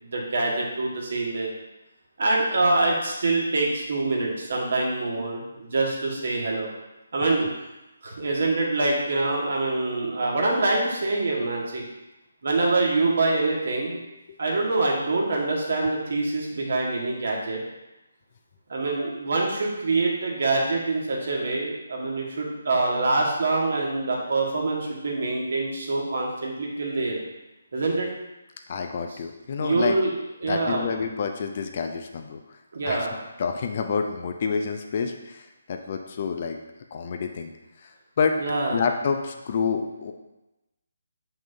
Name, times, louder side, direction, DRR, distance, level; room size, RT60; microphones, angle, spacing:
voice 1, 0.0-1.5 2.2-6.7 7.1-7.5 8.0-11.8 12.4-14.0 14.4-17.6 18.7-27.2 27.7-28.1 29.6-30.1 30.4-31.0 32.7-33.2 38.4-38.8, right 2 dB, 55° right, -2 dB, 1.7 m, -25 dB
voice 2, 28.7-30.0 30.5-32.6 32.9-33.1 33.4-36.6 36.9-37.5 37.8-38.4 38.7-40.1, left 5 dB, 40° left, 5 dB, 0.6 m, -28 dB
7.4 x 5.7 x 2.7 m, 0.99 s
figure-of-eight pair, 145°, 0 cm